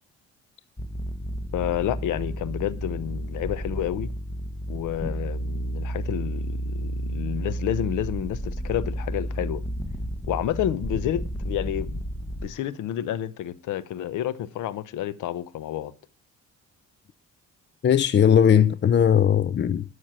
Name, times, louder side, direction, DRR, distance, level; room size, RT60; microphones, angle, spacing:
sound 1, 0.8-12.5, right 1 dB, 10° left, 1.3 m, -32 dB
voice 1, 1.5-4.1 4.7-9.6 10.3-11.9 12.4-15.9, left 11 dB, 85° left, 1.0 m, -29 dB
voice 2, 17.8-19.8, left 8 dB, 35° left, 0.6 m, -18 dB
12.5 x 6.4 x 6.4 m
cardioid pair, 90°, 30 cm